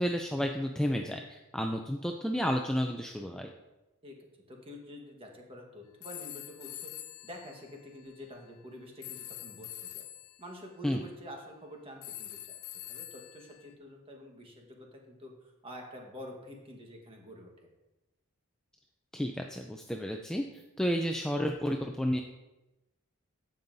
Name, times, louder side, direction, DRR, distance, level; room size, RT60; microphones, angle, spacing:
voice 1, 0.0-3.5 10.8-11.0 19.1-20.4 20.8-22.2, equal, 5° left, 2 dB, 0.3 m, -31 dB
voice 2, 4.0-6.9 7.2-10.0 10.4-12.4 12.9-17.7, left 1 dB, 25° right, 1 dB, 1.3 m, -47 dB
sound 1, 6.0-8.3 9.0-10.4 12.0-13.7, left 13 dB, 75° left, 0.4 m, -45 dB
14.5 x 5.4 x 2.7 m, 1.0 s
head